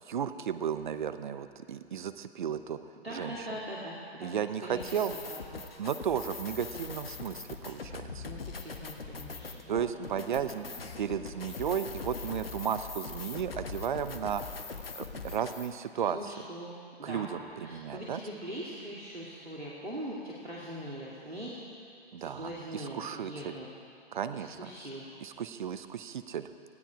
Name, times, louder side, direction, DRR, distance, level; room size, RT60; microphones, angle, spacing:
voice 1, 0.1-2.8 3.1-3.3 4.2-5.1 5.8-8.2 9.7-10.7 11.0-14.4 15.0-16.2 17.0-18.2 22.1-23.5 24.1-24.7 25.2-26.5, right 8 dB, 50° right, 11 dB, 0.9 m, -34 dB
voice 2, 3.0-4.3 4.6-5.4 8.2-10.9 16.1-16.7 17.0-21.6 22.2-23.7 24.3-25.1, equal, 85° right, -6 dB, 2.8 m, -42 dB
sound 1, 4.7-15.7, left 4 dB, 70° left, 1.4 m, -42 dB
19.0 x 15.0 x 4.9 m, 2.4 s
figure-of-eight pair, 125°, 31 cm